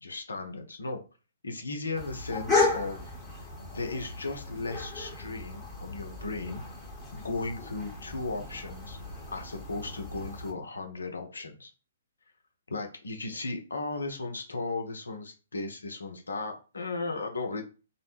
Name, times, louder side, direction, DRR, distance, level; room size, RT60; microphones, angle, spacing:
voice 1, 0.0-1.0 1.4-3.0 3.7-6.6 7.1-9.0 9.3-11.7 12.7-17.6, left 3 dB, 70° left, 5 dB, 0.5 m, -36 dB
sound 1, 1.9-10.5, left 3 dB, 10° left, 0.9 m, -34 dB
2.5 x 2.0 x 3.1 m, 0.34 s
figure-of-eight pair, 120°, 0 cm